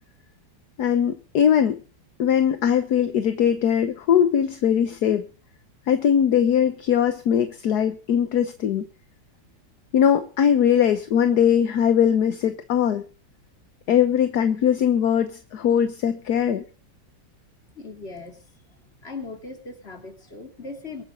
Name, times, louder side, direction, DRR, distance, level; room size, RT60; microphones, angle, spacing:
voice 1, 0.8-1.8 2.2-5.3 5.9-8.9 9.9-13.0 13.9-16.6, left 8 dB, 65° left, 10 dB, 1.5 m, -20 dB
voice 2, 17.7-18.4 19.0-21.0, left 3 dB, 35° left, 4 dB, 3.1 m, -38 dB
24.0 x 9.0 x 3.8 m, 0.36 s
omnidirectional pair, 1.9 m